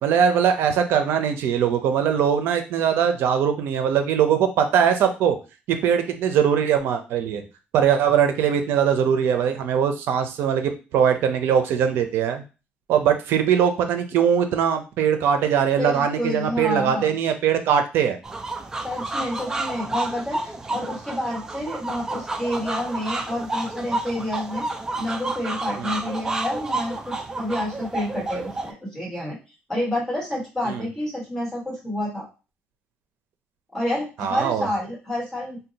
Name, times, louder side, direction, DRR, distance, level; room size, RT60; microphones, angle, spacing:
voice 1, 0.0-5.4 5.7-7.4 7.7-12.4 12.9-18.2 25.8-25.9 30.7-30.9 34.2-34.7, right 8 dB, 75° right, 7 dB, 0.5 m, -21 dB
voice 2, 15.8-17.1 18.8-24.7 25.0-29.4 29.7-32.3 33.7-35.6, left 1 dB, 10° left, -5 dB, 1.4 m, -29 dB
sound 1, 18.2-28.7, right 2 dB, 15° right, 0.3 m, -30 dB
2.7 x 2.2 x 3.9 m, 0.31 s
cardioid pair, 150°, 4 cm